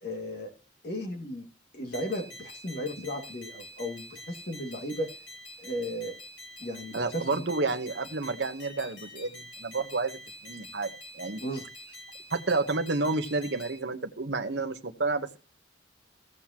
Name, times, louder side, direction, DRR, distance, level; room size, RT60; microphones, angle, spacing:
voice 1, 0.0-0.5 0.8-1.5 1.7-5.1 5.6-6.1 6.6-7.4 11.4-11.6, equal, 55° left, 2 dB, 2.2 m, -35 dB
sound 1, 1.9-13.8, left 1 dB, 75° left, 6.3 m, -46 dB
voice 2, 6.9-10.2 10.4-11.4 12.3-15.4, right 3 dB, 65° right, 8 dB, 1.0 m, -30 dB
16.5 x 7.4 x 2.9 m, 0.36 s
head